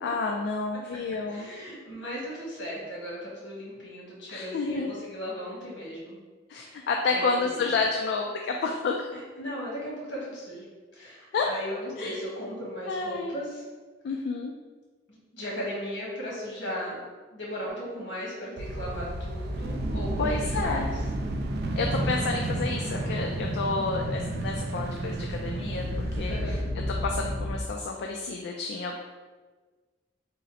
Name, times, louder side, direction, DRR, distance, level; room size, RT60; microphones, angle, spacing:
voice 1, 0.0-1.5 4.3-4.9 6.5-9.1 11.3-11.6 12.0-12.2 12.9-13.4 14.0-14.5 20.2-20.9 21.7-25.9 26.2-29.0, left 4 dB, 65° left, 1 dB, 0.3 m, -30 dB
voice 2, 1.3-6.2 6.6-6.8 7.1-7.6 9.1-10.6 10.9-13.6 15.1-17.0 17.3-20.9 26.3-26.6, equal, 80° left, -5 dB, 1.5 m, -37 dB
sound 1, 18.6-27.6, right 1 dB, 60° right, 0.4 m, -31 dB
3.8 x 2.0 x 4.1 m, 1.4 s
head